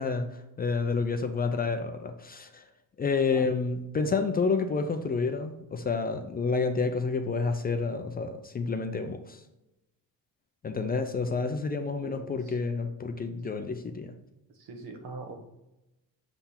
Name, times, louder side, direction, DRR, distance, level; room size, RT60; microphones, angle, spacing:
voice 1, 0.0-2.6 3.0-9.4 10.6-14.1, left 4 dB, 25° left, 7 dB, 0.4 m, -29 dB
voice 2, 12.0-12.6 14.5-15.4, right 3 dB, 70° right, 4 dB, 1.4 m, -43 dB
6.9 x 3.8 x 4.3 m, 0.94 s
cardioid pair, 150°, 37 cm